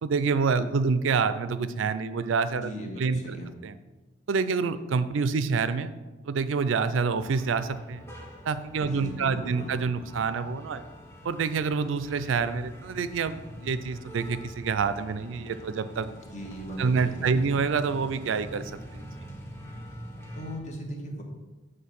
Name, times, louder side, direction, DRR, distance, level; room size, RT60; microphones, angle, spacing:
voice 1, 0.0-2.7 3.0-3.4 3.6-3.7 4.3-5.9 6.3-8.0 8.5-10.8 11.2-16.1 16.8-19.1, right 5 dB, 85° right, 12 dB, 0.4 m, -27 dB
voice 2, 2.6-3.5 8.8-9.7 16.2-17.5 20.3-21.2, equal, 40° left, 1 dB, 1.2 m, -38 dB
sound 1, 7.1-20.6, equal, 15° left, 0.9 m, -44 dB
7.6 x 3.3 x 5.8 m, 1.2 s
head